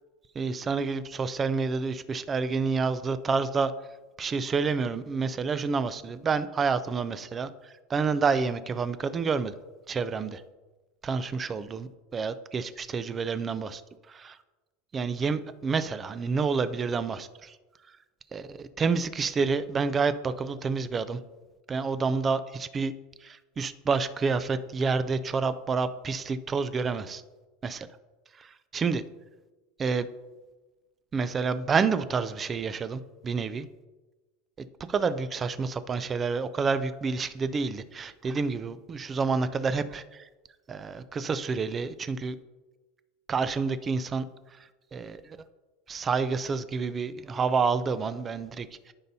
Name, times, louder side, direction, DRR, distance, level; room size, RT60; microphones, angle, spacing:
voice 1, 0.4-3.7 4.2-7.5 7.9-9.5 9.9-10.4 11.0-13.8 14.2-14.3 14.9-17.6 18.3-21.2 21.7-22.9 23.2-27.2 27.6-27.9 28.4-29.0 29.8-30.1 31.1-33.7 34.9-40.2 40.7-42.3 43.3-44.2 44.9-45.2 45.9-48.9, right 5 dB, 20° right, 13 dB, 0.4 m, -28 dB
13.5 x 5.3 x 2.7 m, 1.2 s
supercardioid pair, 150°, 0 cm